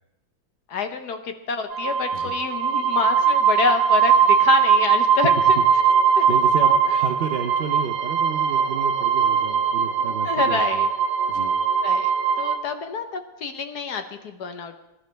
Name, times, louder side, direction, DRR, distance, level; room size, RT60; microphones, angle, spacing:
voice 1, 0.7-5.6 6.2-6.3 6.6-6.8 10.2-10.9 11.8-12.1 12.4-14.8, left 5 dB, 60° left, 7 dB, 1.4 m, -27 dB
sound 1, 1.7-12.6, right 7 dB, 60° right, 0.9 m, -20 dB
voice 2, 6.3-10.8 11.3-11.6, right 6 dB, 90° right, 5 dB, 0.5 m, -31 dB
21.0 x 11.5 x 3.4 m, 0.93 s
omnidirectional pair, 2.1 m